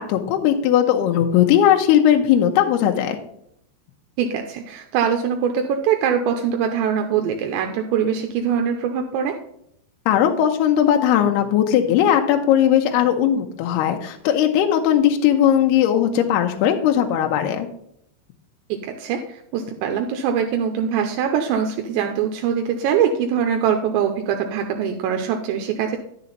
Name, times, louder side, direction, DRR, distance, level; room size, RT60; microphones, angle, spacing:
voice 1, 0.0-3.2 10.1-17.7, left 10 dB, 75° left, 4 dB, 2.4 m, -18 dB
voice 2, 4.2-9.4 18.7-26.0, right 8 dB, 85° right, 4 dB, 2.7 m, -23 dB
9.8 x 6.8 x 4.0 m, 0.72 s
omnidirectional pair, 5.4 m